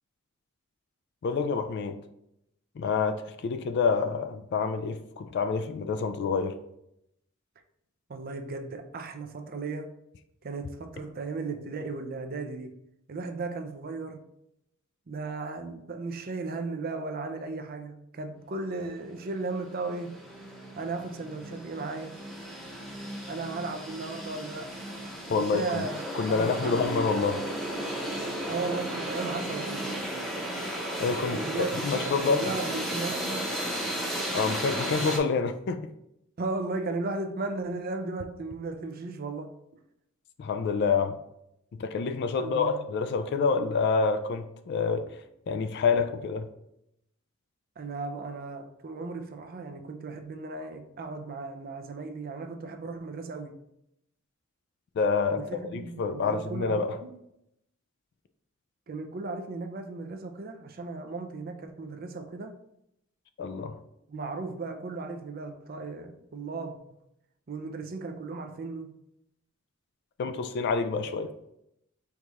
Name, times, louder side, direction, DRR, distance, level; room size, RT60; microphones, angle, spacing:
voice 1, 1.2-2.0 2.8-6.5 25.3-25.9 26.1-27.4 31.0-31.4 31.8-32.4 34.3-35.9 40.4-41.2 41.8-45.2 45.5-46.5 55.0-57.0 63.4-63.8 70.2-71.3, left 5 dB, 55° left, 0.3 m, -27 dB
voice 2, 8.1-9.9 10.4-12.7 13.1-14.2 15.1-20.1 20.6-22.2 23.3-26.0 26.3-26.8 28.5-29.9 31.3-31.9 32.1-33.5 36.4-39.5 42.4-42.8 47.8-53.6 55.3-57.1 58.9-62.6 64.1-66.8 67.5-68.9, right 3 dB, 45° right, 0.5 m, -36 dB
sound 1, 19.2-19.3 19.6-35.2, right 1 dB, ahead, 0.8 m, -34 dB
4.7 x 2.3 x 4.0 m
head